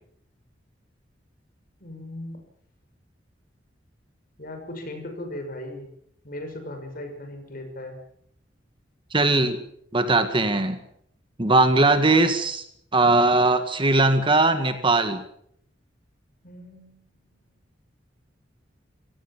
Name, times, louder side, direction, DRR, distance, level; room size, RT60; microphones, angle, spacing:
voice 1, 1.8-2.4 4.4-5.9 6.2-8.0 16.4-17.6, left 1 dB, 50° left, 6 dB, 6.1 m, -38 dB
voice 2, 9.1-9.6 9.9-10.8 11.4-12.6 12.9-15.2, right 2 dB, 30° right, 9 dB, 1.9 m, -20 dB
25.5 x 17.0 x 7.4 m, 0.69 s
head